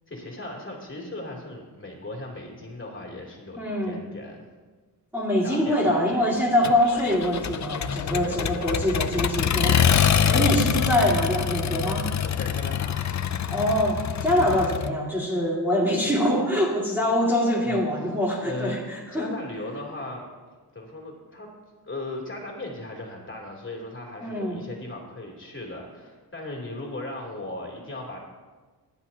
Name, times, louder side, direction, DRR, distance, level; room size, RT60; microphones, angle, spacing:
voice 1, 0.1-4.5 5.4-6.5 8.1-8.7 10.3-10.4 12.2-13.1 17.6-17.8 18.4-18.8 19.1-20.2 20.7-21.5 21.8-28.2, left 2 dB, 30° left, -2 dB, 3.3 m, -37 dB
voice 2, 3.6-4.0 5.1-9.8 10.3-12.1 13.5-19.3 24.2-24.6, equal, 5° right, -6 dB, 2.4 m, -24 dB
Accelerating revving vroom, 6.6-14.9, left 7 dB, 45° left, 0.6 m, -25 dB
23.0 x 10.5 x 2.9 m, 1.4 s
wide cardioid pair, 110°, 39 cm